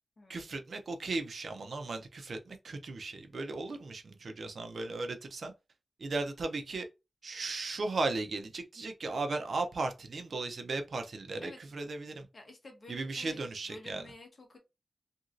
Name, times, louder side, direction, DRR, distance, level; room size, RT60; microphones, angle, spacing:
voice 1, 0.3-5.5 6.0-6.9 7.2-12.3 12.9-14.0, right 3 dB, 55° right, 0.5 m, -36 dB
voice 2, 12.3-13.4 13.7-14.6, left 2 dB, 40° left, 1.0 m, -50 dB
2.9 x 2.6 x 2.5 m
wide cardioid pair, 140°, 0 cm